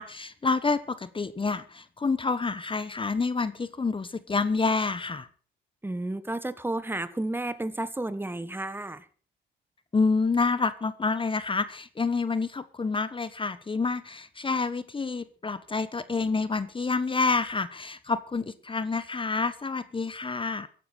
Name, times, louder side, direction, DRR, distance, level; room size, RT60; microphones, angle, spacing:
voice 1, 0.0-5.3 9.9-20.7, left 4 dB, 25° left, 14 dB, 1.2 m, -28 dB
voice 2, 5.8-9.1, right 2 dB, 10° right, 13 dB, 1.6 m, -32 dB
15.0 x 12.0 x 6.3 m, 0.41 s
cardioid pair, 90°, 20 cm